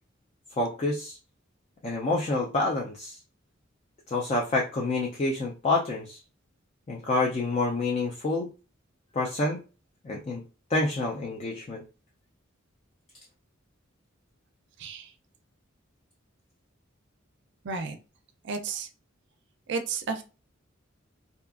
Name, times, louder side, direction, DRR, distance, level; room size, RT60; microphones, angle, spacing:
voice 1, 0.6-1.2 1.8-3.2 4.1-6.2 6.9-8.5 9.1-9.6 10.0-10.4 10.7-11.8, left 2 dB, 30° left, -1 dB, 0.4 m, -28 dB
voice 2, 17.6-18.0 18.4-18.9 19.7-20.2, right 4 dB, 60° right, 8 dB, 0.4 m, -32 dB
2.6 x 2.4 x 2.3 m, 0.33 s
head